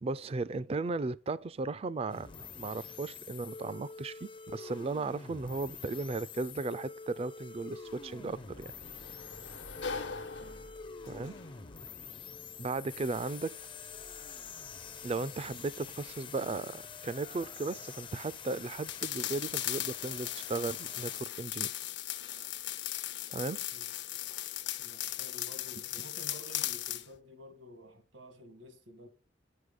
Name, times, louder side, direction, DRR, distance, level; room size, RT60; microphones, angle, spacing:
voice 1, 0.0-2.3 2.6-8.7 11.0-11.4 12.6-13.6 15.0-21.7 22.1-22.5 23.3-23.6, right 3 dB, 30° right, 0.4 m, -36 dB
sound 1, 2.1-21.2, left 6 dB, 25° left, 0.5 m, -46 dB
Sliding door, 7.5-20.2, left 4 dB, 80° left, 1.1 m, -49 dB
voice 2, 10.0-10.8 23.7-23.9 24.8-29.1, equal, 85° right, 1.8 m, -52 dB
sound 2, 18.9-27.1, left 13 dB, 65° left, 0.7 m, -37 dB
9.5 x 6.4 x 5.2 m
head